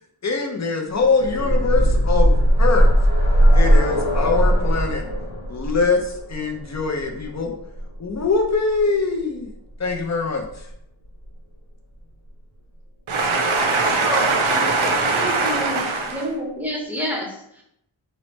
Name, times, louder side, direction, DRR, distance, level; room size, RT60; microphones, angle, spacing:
voice 1, 0.2-2.9 3.5-5.0 5.5-7.5 8.0-9.5 9.8-10.7, left 4 dB, 35° left, 3 dB, 0.6 m, -23 dB
sound 1, 1.0-8.8 9.9-10.0 10.4-10.5, equal, 80° left, 0.8 m, -19 dB
voice 2, 13.1-16.2, right 3 dB, 85° right, 2 dB, 0.7 m, -21 dB
voice 3, 13.6-14.4 14.8-17.6, equal, 5° right, -1 dB, 0.7 m, -29 dB
3.1 x 2.0 x 3.0 m, 0.76 s
wide cardioid pair, 50°, 47 cm